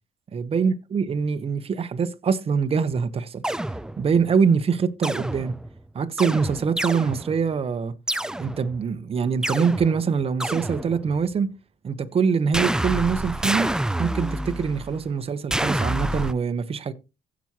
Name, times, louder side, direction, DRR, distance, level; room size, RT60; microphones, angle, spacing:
voice 1, 0.3-3.4 4.0-5.5 5.9-7.9 8.4-11.5 11.8-13.7 14.0-16.9, right 6 dB, 35° right, 1.2 m, -24 dB
sound 1, 3.4-4.2 5.0-5.8 6.2-7.5 8.1-8.8 9.4-11.3 12.5-15.0 15.5-16.3, right 1 dB, 5° right, 0.4 m, -28 dB
16.0 x 6.3 x 3.0 m
cardioid pair, 110°, 17 cm